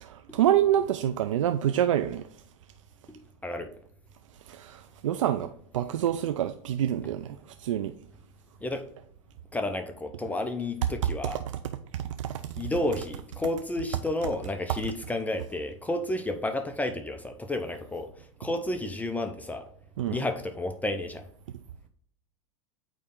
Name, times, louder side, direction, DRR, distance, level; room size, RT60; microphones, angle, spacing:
voice 1, 0.0-2.2 4.5-7.9 12.2-12.4 20.0-20.2, right 11 dB, 85° right, 0.4 m, -27 dB
voice 2, 9.5-11.4 12.6-18.1 18.4-19.7 20.1-21.2, left 1 dB, 10° left, 0.6 m, -31 dB
8.5 x 3.3 x 3.7 m
hypercardioid pair, 110°, 16 cm